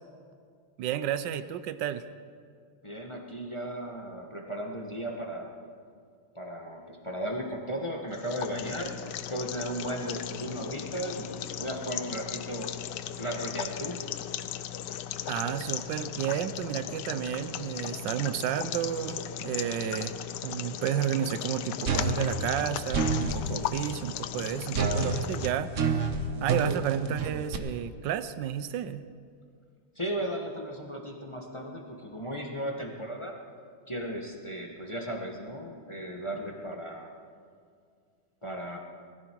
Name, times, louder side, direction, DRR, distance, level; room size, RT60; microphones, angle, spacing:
voice 1, 0.8-2.0 15.3-20.2 20.4-26.0 26.4-29.0, right 10 dB, 70° right, 13 dB, 1.2 m, -32 dB
voice 2, 2.8-5.5 6.3-12.8 13.2-14.0 29.9-33.3 33.9-37.1 38.4-38.8, right 1 dB, 20° left, 1 dB, 1.0 m, -36 dB
sound 1, 8.1-25.5, left 11 dB, 75° left, 1.0 m, -37 dB
sound 2, 21.9-23.4 24.7-27.6, right 4 dB, 45° right, 1.0 m, -28 dB
20.5 x 14.5 x 4.6 m, 2.2 s
omnidirectional pair, 2.4 m